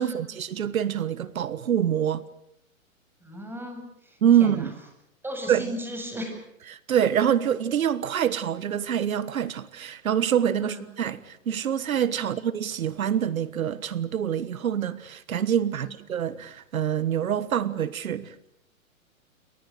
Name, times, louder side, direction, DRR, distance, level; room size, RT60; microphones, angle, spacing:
voice 1, 0.0-2.2 4.2-4.7 5.5-5.6 6.7-18.5, right 9 dB, 80° right, 16 dB, 1.5 m, -25 dB
voice 2, 3.2-4.7 5.2-6.4 10.6-10.9 12.2-12.3 15.7-15.9, equal, 5° right, 4 dB, 7.3 m, -37 dB
29.5 x 24.5 x 6.6 m, 0.79 s
hypercardioid pair, 140°, 41 cm